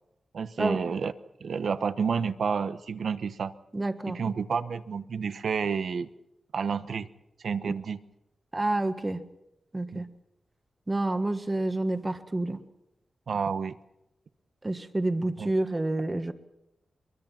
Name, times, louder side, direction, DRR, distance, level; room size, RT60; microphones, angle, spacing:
voice 1, 0.3-1.1 1.4-3.5 4.0-6.1 6.5-7.1 7.4-8.0 9.9-10.0 13.3-13.8 15.4-15.5, right 6 dB, 70° right, 12 dB, 1.0 m, -30 dB
voice 2, 3.7-4.2 8.5-9.2 9.7-10.1 10.9-12.6 14.6-16.3, right 2 dB, 20° right, 8 dB, 1.5 m, -28 dB
23.5 x 23.0 x 5.9 m, 0.85 s
wide cardioid pair, 125°, 0 cm